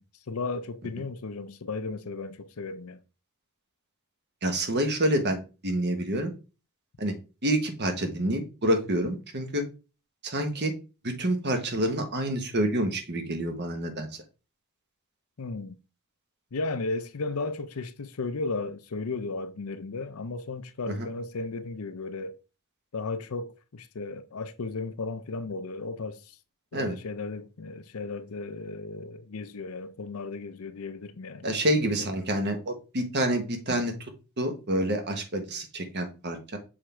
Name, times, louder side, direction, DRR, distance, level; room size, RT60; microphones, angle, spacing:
voice 1, 0.3-3.0 15.4-15.8 16.5-22.4 22.9-26.4 26.7-31.5, left 3 dB, 70° left, 0.6 m, -35 dB
voice 2, 4.4-6.3 7.0-7.1 7.4-9.6 10.2-10.7 11.0-14.1 20.9-21.1 26.7-26.9 31.4-33.9 34.4-36.6, right 1 dB, 50° right, 1.3 m, -28 dB
6.4 x 3.5 x 4.4 m
head